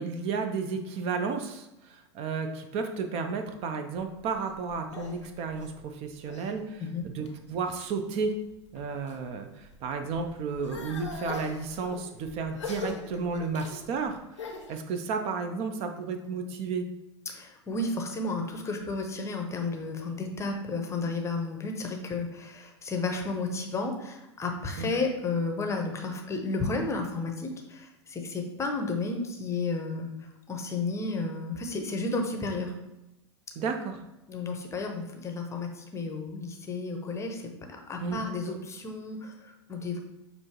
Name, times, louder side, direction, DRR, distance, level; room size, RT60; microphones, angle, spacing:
voice 1, 0.0-8.4 8.7-16.9 24.8-24.9 33.6-34.0 38.0-38.6, right 4 dB, 45° right, 6 dB, 0.5 m, -33 dB
sound 1, 4.2-6.5 7.0-7.6 8.2-9.2 9.6-14.8, left 4 dB, 85° left, 0.7 m, -42 dB
voice 2, 17.3-32.7 34.3-40.0, left 3 dB, 20° left, 4 dB, 0.7 m, -32 dB
6.2 x 2.6 x 2.9 m, 0.95 s
hypercardioid pair, 95°, 15 cm